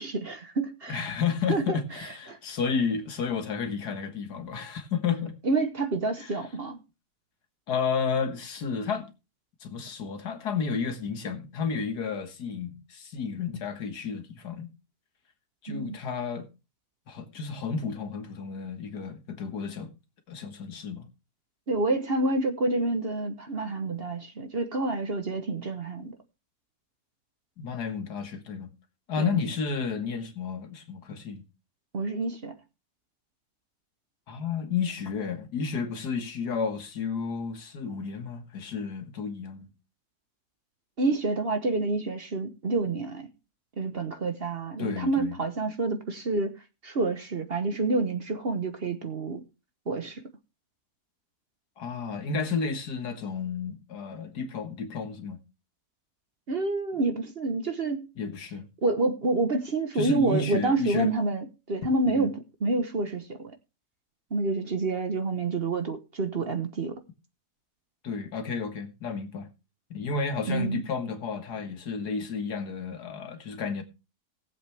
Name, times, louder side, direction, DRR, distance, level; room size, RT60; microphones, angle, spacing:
voice 1, 0.0-1.0 1.5-1.8 2.3-2.4 5.4-6.8 15.7-16.0 21.7-26.1 29.2-29.3 31.9-32.5 41.0-43.3 43.8-46.5 46.8-49.4 49.9-50.2 56.5-58.1 58.8-63.5 64.3-66.9 70.5-70.8, right 3 dB, 40° right, 1.2 m, -28 dB
voice 2, 0.9-5.3 6.2-6.4 7.7-9.1 9.6-14.7 15.6-16.5 17.1-19.9 20.3-21.1 27.6-28.7 29.1-31.5 34.3-39.7 44.8-45.4 51.8-55.4 58.2-58.7 59.9-61.1 62.1-62.3 68.0-69.5 69.9-73.8, left 5 dB, 80° left, 2.0 m, -32 dB
18.5 x 7.6 x 3.4 m
omnidirectional pair, 1.7 m